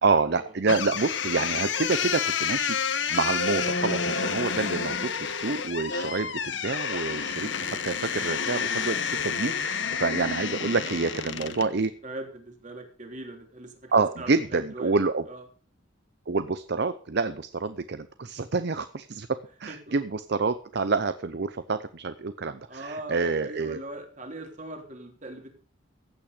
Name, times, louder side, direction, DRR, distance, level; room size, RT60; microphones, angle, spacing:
voice 1, 0.0-11.9 13.9-15.2 16.3-23.8, right 4 dB, 60° right, 12 dB, 0.7 m, -28 dB
sound 1, 0.7-11.7, left 6 dB, 65° left, 1.1 m, -29 dB
voice 2, 11.4-14.9 15.3-15.4 19.7-19.9 22.7-25.5, right 2 dB, 40° right, 3 dB, 3.3 m, -41 dB
15.5 x 8.8 x 5.1 m, 0.42 s
head